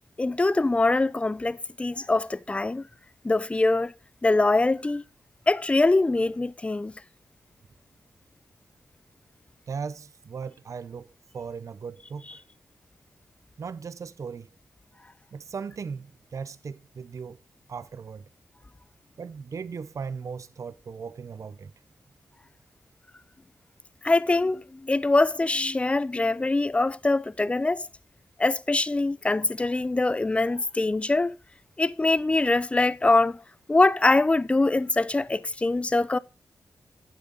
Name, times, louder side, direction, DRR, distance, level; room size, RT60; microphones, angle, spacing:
voice 1, 0.2-2.8 3.2-3.9 4.2-5.0 5.5-6.9 24.0-27.9 28.4-31.4 31.8-33.4 33.7-36.2, left 2 dB, 20° left, 0.4 m, -23 dB
voice 2, 9.7-12.4 13.6-14.5 15.3-17.4 17.7-18.2 19.2-21.7, right 5 dB, 60° right, 0.5 m, -37 dB
9.4 x 7.6 x 3.8 m
cardioid pair, 70°, 6 cm